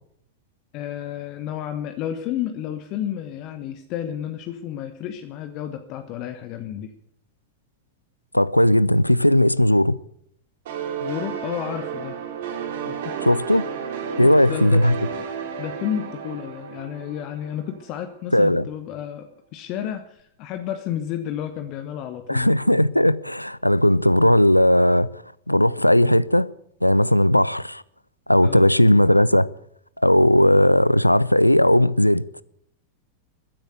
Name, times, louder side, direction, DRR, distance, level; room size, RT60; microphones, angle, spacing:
voice 1, 0.7-6.9 11.0-12.2 12.8-13.2 14.2-14.9 15.6-22.5 28.4-28.7, left 10 dB, 40° left, 1.2 m, -31 dB
voice 2, 8.3-10.0 13.2-13.7 14.2-15.0 18.3-18.6 22.3-26.5 26.8-27.8 28.3-29.5 30.0-32.3, left 1 dB, 90° left, 0.5 m, -17 dB
sound 1, 10.7-18.1, right 7 dB, 55° right, 2.7 m, -33 dB
14.5 x 10.5 x 8.0 m
figure-of-eight pair, 90°, 0 cm